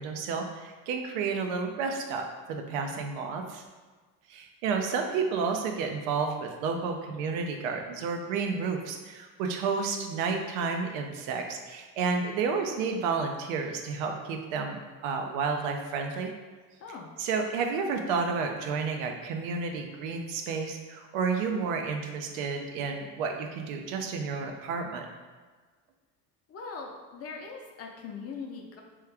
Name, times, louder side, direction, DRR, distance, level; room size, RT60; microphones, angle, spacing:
voice 1, 0.0-3.6 4.3-16.3 17.2-25.1, right 5 dB, 90° right, 4 dB, 0.6 m, -31 dB
voice 2, 26.5-28.8, left 5 dB, 40° left, 1 dB, 0.6 m, -41 dB
3.1 x 2.3 x 3.3 m, 1.4 s
supercardioid pair, 95°, 40 cm